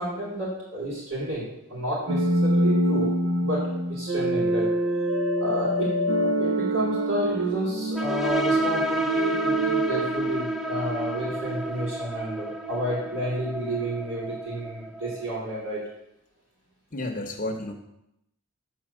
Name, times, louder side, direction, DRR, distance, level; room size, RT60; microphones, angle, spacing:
voice 1, 0.0-3.6 3.9-4.7 5.4-15.8, right 1 dB, 80° right, -10 dB, 4.3 m, -31 dB
sound 1, 2.1-11.0, equal, 65° right, 0.7 m, -26 dB
sound 2, 8.0-15.3, right 2 dB, ahead, 0.5 m, -29 dB
voice 2, 16.9-17.7, left 1 dB, 40° left, 3 dB, 0.9 m, -31 dB
10.5 x 4.1 x 7.5 m, 0.81 s
head